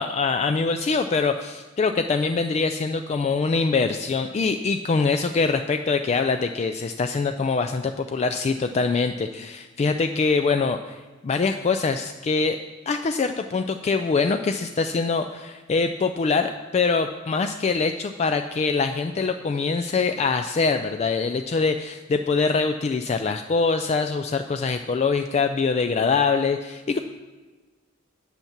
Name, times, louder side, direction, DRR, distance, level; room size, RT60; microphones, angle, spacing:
voice 1, 0.0-11.0 11.2-12.6 12.9-27.0, left 4 dB, 35° left, 7 dB, 0.3 m, -24 dB
8.1 x 5.8 x 7.2 m, 1.3 s
head